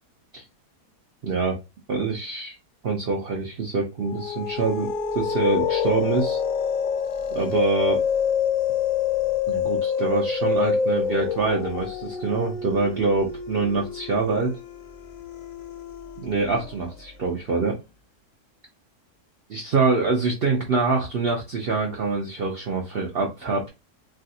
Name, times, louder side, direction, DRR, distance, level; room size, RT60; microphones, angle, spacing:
voice 1, 1.2-1.6 1.9-2.6 2.8-6.4 7.3-8.0 9.5-14.5 16.2-17.8 19.5-23.7, right 3 dB, 70° right, 1 dB, 0.5 m, -25 dB
sound 1, 4.0-16.8, left 7 dB, 70° left, 0.9 m, -27 dB
3.3 x 2.4 x 2.7 m, 0.26 s
omnidirectional pair, 1.7 m